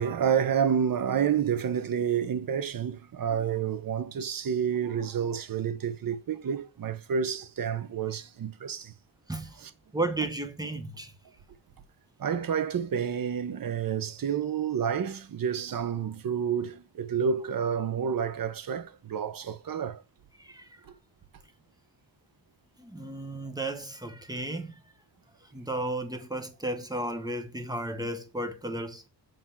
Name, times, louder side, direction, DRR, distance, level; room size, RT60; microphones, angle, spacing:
voice 1, 0.0-8.9 9.6-9.7 12.2-20.0 20.9-21.0, right 7 dB, 50° right, 0.9 m, -29 dB
voice 2, 9.3-9.6 9.9-11.1 20.4-20.8 22.8-24.8 25.4-29.0, right 2 dB, 10° right, 1.0 m, -34 dB
7.6 x 3.5 x 5.7 m
wide cardioid pair, 125°, 45 cm